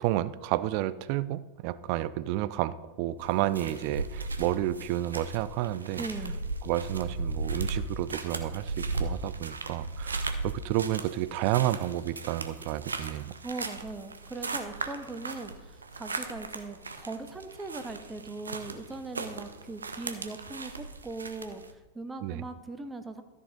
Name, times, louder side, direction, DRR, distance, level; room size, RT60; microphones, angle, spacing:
voice 1, 0.0-6.0 6.6-13.3 22.2-22.4, right 14 dB, 45° right, 16 dB, 0.4 m, -31 dB
sound 1, 3.2-21.7, right 3 dB, 75° right, 0.8 m, -37 dB
voice 2, 6.0-6.4 13.4-23.2, right 3 dB, 10° right, 9 dB, 0.7 m, -40 dB
13.0 x 6.6 x 3.9 m, 1.2 s
figure-of-eight pair, 90°, 0 cm